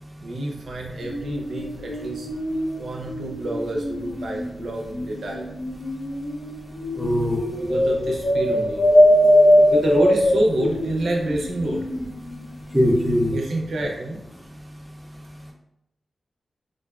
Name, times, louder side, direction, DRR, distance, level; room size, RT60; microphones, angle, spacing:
voice 1, 0.2-2.3 2.7-5.5 7.3-8.8 9.7-11.9 13.3-14.2, right 1 dB, 75° right, -1 dB, 0.5 m, -27 dB
sound 1, 1.0-12.4 12.7-13.1, left 1 dB, 85° left, 0.5 m, -22 dB
voice 2, 7.0-7.4 12.7-13.3, equal, 5° right, -1 dB, 0.3 m, -20 dB
2.6 x 2.2 x 2.2 m, 0.83 s
wide cardioid pair, 100°, 0 cm